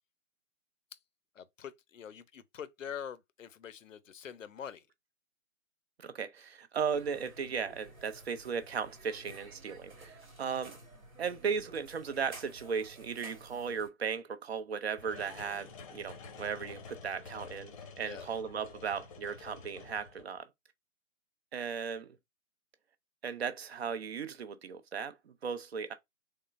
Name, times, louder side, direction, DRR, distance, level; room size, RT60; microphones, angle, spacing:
voice 1, 1.3-4.9 18.0-18.3, left 8 dB, 65° left, 0.6 m, -45 dB
voice 2, 6.0-10.8 11.2-20.5 21.5-22.2 23.2-25.9, right 6 dB, 50° right, 0.6 m, -36 dB
sound 1, 6.9-13.9, right 2 dB, 85° right, 1.4 m, -53 dB
sound 2, 8.2-8.3 8.7-9.0 9.4-9.5 10.6-10.7 11.7-11.8 12.8-12.9 15.0-20.4, left 4 dB, 25° left, 0.6 m, -49 dB
3.6 x 3.3 x 2.4 m
figure-of-eight pair, 130°, 41 cm